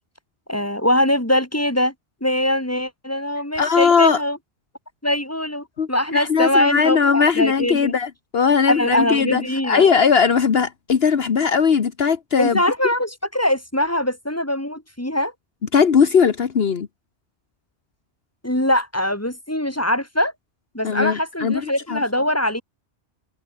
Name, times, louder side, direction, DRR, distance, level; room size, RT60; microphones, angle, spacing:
voice 1, 0.5-1.9 2.2-4.4 5.0-7.9 8.7-9.9 12.4-15.3 18.4-20.3 20.7-22.6, left 1 dB, 15° left, 4.3 m, -22 dB
voice 2, 3.6-4.2 5.8-12.6 15.7-16.9 20.8-22.0, left 6 dB, 65° left, 1.4 m, -19 dB
omnidirectional pair, 1.1 m